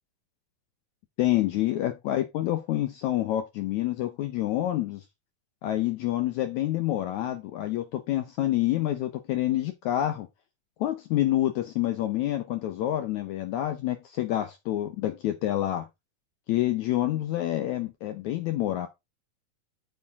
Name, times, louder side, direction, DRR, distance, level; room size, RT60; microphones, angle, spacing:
voice 1, 1.2-5.0 5.6-10.3 10.8-15.8 16.5-18.9, left 14 dB, 80° left, 1.7 m, -27 dB
8.5 x 6.7 x 3.6 m
omnidirectional pair, 4.2 m